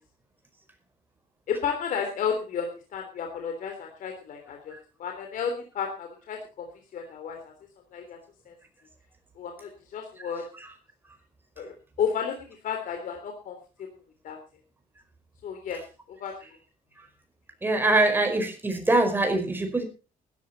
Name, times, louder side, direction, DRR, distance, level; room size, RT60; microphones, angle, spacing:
voice 1, 1.5-2.7 2.9-4.7 5.0-6.7 6.9-7.5 7.9-8.2 8.5-8.6 9.4-10.4 11.6-11.7 12.0-12.3 12.6-13.5 14.2-14.4 15.4-15.8 16.2-16.3, left 7 dB, 65° left, 3 dB, 3.4 m, -32 dB
voice 2, 17.6-19.8, right 2 dB, 15° right, 4 dB, 4.8 m, -23 dB
16.0 x 13.5 x 4.1 m, 0.33 s
cardioid pair, 135°, 15 cm